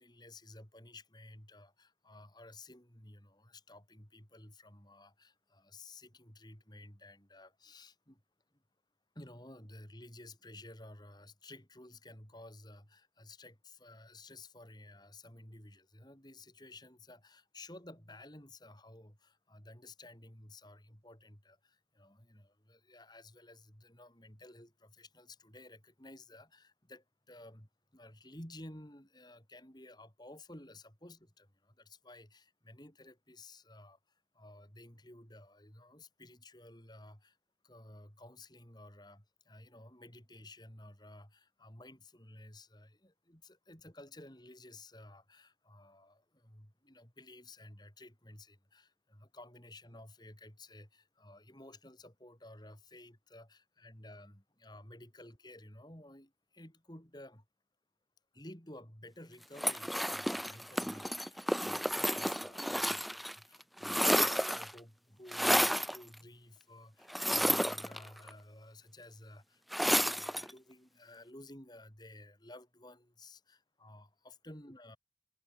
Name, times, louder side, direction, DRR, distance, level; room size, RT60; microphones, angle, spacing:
voice 1, 0.0-8.2 8.5-8.6 9.1-37.4 37.6-57.4 58.3-75.0, left 1 dB, 20° left, 5.0 m, -54 dB
sound 1, 59.6-63.3 63.6-64.8 65.3-66.0 67.1-68.3 69.7-70.5, equal, ahead, 0.5 m, -31 dB
head